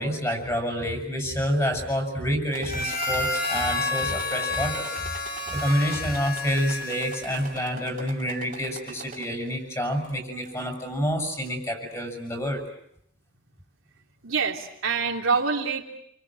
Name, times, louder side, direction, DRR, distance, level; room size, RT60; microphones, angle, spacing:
voice 1, 0.0-12.6, equal, 15° left, 4 dB, 7.4 m, -28 dB
sound 1, 2.5-9.5 10.0-10.7 11.5-11.6 12.0-12.1, right 5 dB, 40° right, 3.5 m, -43 dB
Harmonica, 2.6-7.7, left 3 dB, 45° left, 6.6 m, -30 dB
voice 2, 14.2-15.8, right 5 dB, 75° right, 1 dB, 3.2 m, -25 dB
29.0 x 25.5 x 7.7 m, 0.74 s
head